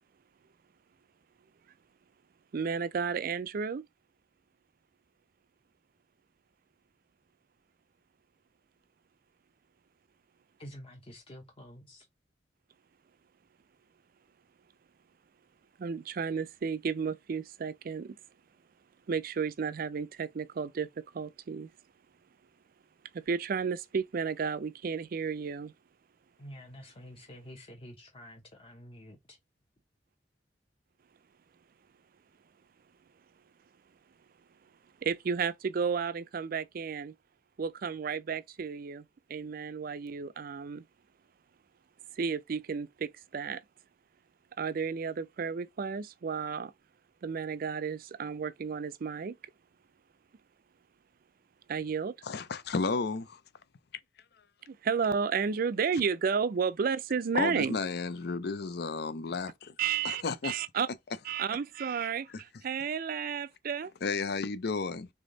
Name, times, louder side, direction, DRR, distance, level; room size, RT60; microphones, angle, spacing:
voice 1, 2.5-3.9 15.8-18.2 19.1-21.7 23.1-25.7 35.0-37.1 37.6-40.8 42.2-43.6 44.6-46.7 47.2-49.4 51.7-52.2 54.7-57.8 59.8-60.9 61.2-63.9, right 6 dB, 55° right, 0.4 m, -32 dB
voice 2, 10.6-12.1 26.4-29.4, equal, 30° left, 0.8 m, -49 dB
voice 3, 52.3-53.4 57.3-59.7 60.0-60.5 64.0-65.1, left 4 dB, 65° left, 0.6 m, -32 dB
3.5 x 3.5 x 3.8 m
head